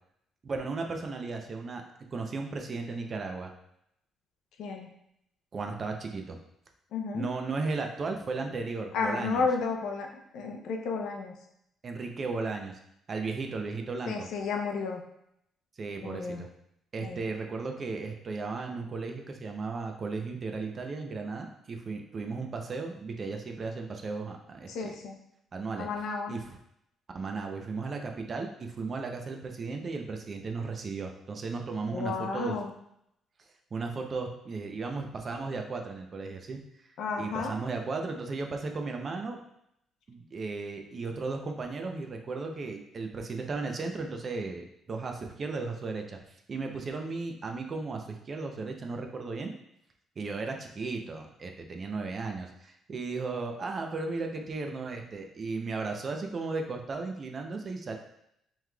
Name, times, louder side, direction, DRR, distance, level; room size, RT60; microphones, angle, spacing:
voice 1, 0.4-1.8 2.1-3.5 5.5-6.4 7.1-9.5 11.8-12.8 13.1-14.3 15.8-16.5 16.9-25.0 25.5-25.9 26.3-26.6 27.1-32.6 33.7-36.6 37.2-39.4 40.1-49.5 50.2-57.9, right 4 dB, 35° right, 3 dB, 0.5 m, -35 dB
voice 2, 4.6-4.9 6.9-7.3 8.9-10.1 10.3-11.3 14.1-15.0 16.0-16.4 17.0-17.2 24.7-25.2 25.8-26.3 31.9-32.7 37.0-37.5, left 4 dB, 80° left, 2 dB, 0.6 m, -32 dB
5.5 x 3.2 x 2.3 m, 0.76 s
cardioid pair, 130°, 0 cm